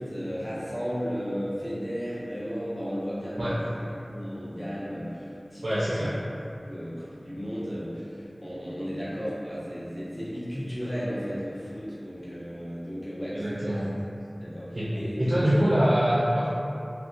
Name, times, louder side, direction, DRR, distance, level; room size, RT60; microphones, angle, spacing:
voice 1, 0.0-3.8 4.1-6.1 6.7-13.8 14.3-15.6, equal, 25° left, -9 dB, 0.6 m, -34 dB
voice 2, 5.6-6.2 13.3-13.9 14.7-14.9 15.2-16.5, equal, 80° right, -11 dB, 0.4 m, -24 dB
2.5 x 2.1 x 2.4 m, 2.7 s
wide cardioid pair, 50°, 0 cm